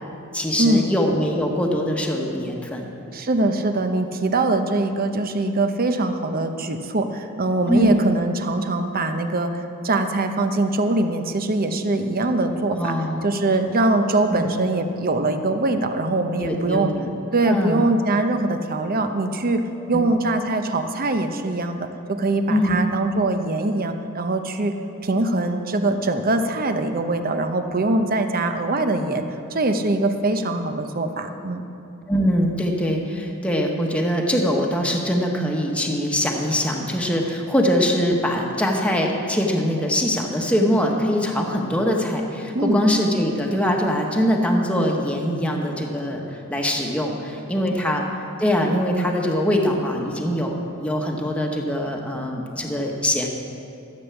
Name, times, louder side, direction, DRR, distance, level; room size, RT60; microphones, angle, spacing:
voice 1, 0.3-2.8 7.7-8.0 12.7-13.2 14.3-14.5 16.4-17.1 17.5-17.9 19.9-20.1 22.5-22.8 32.1-46.2 46.5-48.1 48.4-53.3, equal, 5° left, 0 dB, 1.3 m, -22 dB
voice 2, 3.1-12.9 13.2-16.9 17.3-19.6 19.9-24.7 25.0-29.2 29.5-31.6 42.5-42.8 47.7-47.8, right 2 dB, 45° right, 7 dB, 0.8 m, -22 dB
13.5 x 8.1 x 7.1 m, 3.0 s
head